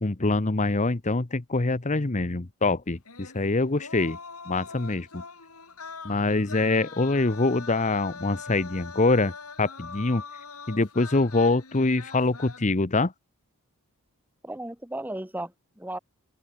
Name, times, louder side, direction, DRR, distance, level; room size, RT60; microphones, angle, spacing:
voice 1, 0.0-4.2 4.5-5.2 6.0-9.3 9.6-10.2 10.7-13.1, left 3 dB, 35° left, 1.0 m, -24 dB
sound 1, 3.0-12.7, left 4 dB, 80° left, 6.8 m, -42 dB
voice 2, 14.4-16.0, right 1 dB, 10° right, 1.7 m, -35 dB
open air
head